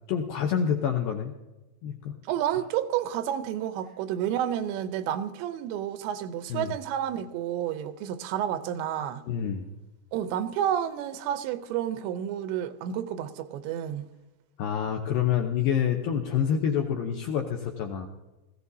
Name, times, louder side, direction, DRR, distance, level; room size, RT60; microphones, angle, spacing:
voice 1, 0.1-1.3 1.8-2.2 2.5-2.6 6.5-6.7 9.3-9.7 14.6-18.1, left 8 dB, 80° left, 2.1 m, -27 dB
voice 2, 2.3-9.2 10.1-14.1, right 10 dB, 90° right, 3.0 m, -30 dB
18.0 x 15.0 x 2.7 m
omnidirectional pair, 5.0 m